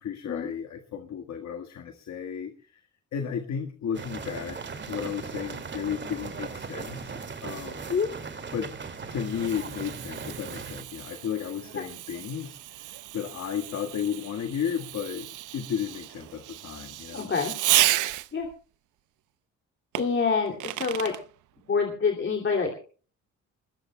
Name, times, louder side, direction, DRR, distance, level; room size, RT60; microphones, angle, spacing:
voice 1, 0.0-2.8 3.1-4.6 4.9-7.9 8.5-8.7 9.0-17.3, left 8 dB, 65° left, 5 dB, 1.7 m, -34 dB
sound 1, 3.9-10.8, right 5 dB, 40° right, 2.3 m, -38 dB
Fireworks, 8.6-18.5 19.9-21.2, right 15 dB, 80° right, 0.8 m, -32 dB
voice 2, 17.1-17.5 18.3-18.5 20.0-21.2 21.7-22.7, left 5 dB, 40° left, 2 dB, 2.7 m, -26 dB
21.5 x 20.0 x 2.2 m, 0.39 s
cardioid pair, 90°, 30 cm